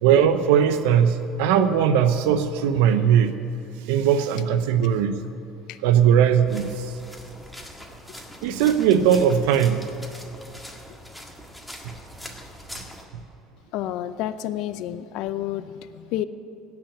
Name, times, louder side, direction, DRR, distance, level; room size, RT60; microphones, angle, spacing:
voice 1, 0.0-3.3 3.8-5.2 5.8-7.0 8.4-9.8 11.8-11.9, right 8 dB, 85° right, 9 dB, 0.7 m, -19 dB
sound 1, 6.5-13.1, equal, ahead, 1.7 m, -42 dB
voice 2, 13.7-16.2, left 12 dB, 70° left, 13 dB, 0.6 m, -30 dB
17.0 x 6.0 x 9.9 m, 2.8 s
cardioid pair, 115°, 0 cm